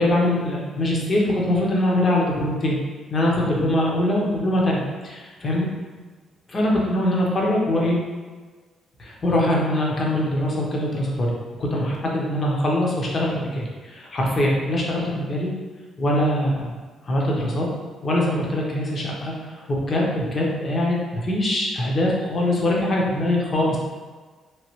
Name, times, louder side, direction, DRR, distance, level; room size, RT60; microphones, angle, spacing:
voice 1, 0.0-2.8 3.1-5.7 6.5-8.0 9.0-11.3 11.6-15.5 16.0-16.8 17.1-17.7 18.0-23.8, left 1 dB, 40° left, -3 dB, 0.7 m, -22 dB
3.0 x 2.3 x 3.0 m, 1.4 s
cardioid pair, 90°, 0 cm